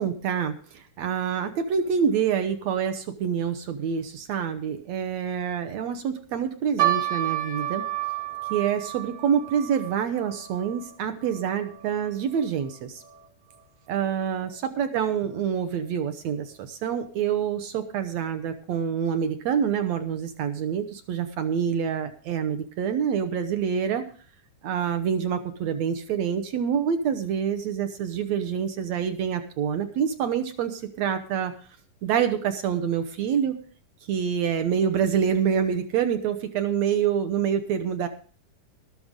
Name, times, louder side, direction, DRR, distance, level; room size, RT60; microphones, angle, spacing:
voice 1, 0.0-7.8 8.5-13.0 13.9-24.0 24.6-31.5 32.0-33.6 34.1-38.1, right 8 dB, 70° right, 8 dB, 1.8 m, -26 dB
sound 1, 6.8-13.3 13.5-13.6 14.4-14.7 15.3-15.4 15.7-15.9, right 13 dB, 40° right, 1.4 m, -31 dB
13.5 x 12.5 x 3.7 m, 0.41 s
omnidirectional pair, 3.9 m